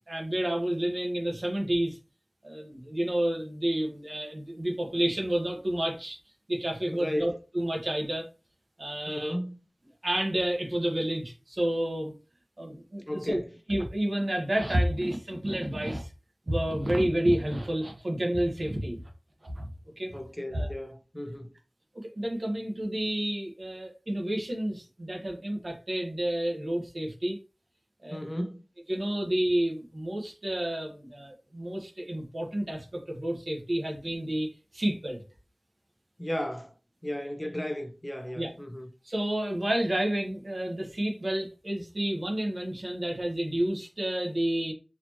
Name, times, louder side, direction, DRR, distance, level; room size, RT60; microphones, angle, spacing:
voice 1, 0.1-2.0 2.4-6.2 6.5-8.3 8.8-9.4 10.0-12.1 12.6-13.4 13.7-16.1 16.5-19.0 19.4-19.7 20.0-20.2 20.5-20.7 21.9-27.4 28.0-28.4 28.9-35.2 38.4-38.5 39.0-44.7, right 1 dB, 60° right, 1.2 m, -30 dB
voice 2, 6.9-7.3 9.1-9.6 13.1-13.5 20.1-21.5 28.1-28.6 36.2-36.7 37.0-38.9, left 1 dB, 20° left, 0.6 m, -34 dB
4.2 x 2.8 x 3.0 m
wide cardioid pair, 55°, 0 cm